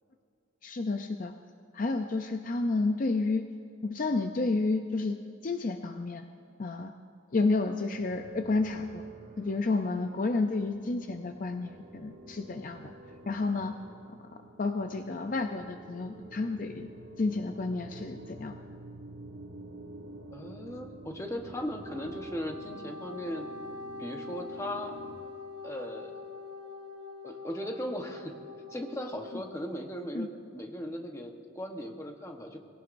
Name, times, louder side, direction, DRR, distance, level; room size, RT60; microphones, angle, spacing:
voice 1, 0.6-1.3 1.7-3.4 3.8-5.2 5.4-6.3 6.6-6.9 7.3-9.1 9.4-12.9 13.3-13.7 14.1-14.2 14.6-16.9 17.2-18.6 30.1-30.3, left 3 dB, 40° left, 6 dB, 0.5 m, -30 dB
sound 1, 7.9-25.2, right 2 dB, 70° right, 1.8 m, -49 dB
voice 2, 20.3-23.5 24.0-24.9 25.6-26.2 27.2-28.4 28.7-32.6, equal, 15° left, 2 dB, 1.1 m, -38 dB
Wind instrument woodwind instrument, 21.6-29.7, left 3 dB, 20° right, 1.5 m, -44 dB
21.5 x 17.0 x 2.6 m, 2.5 s
head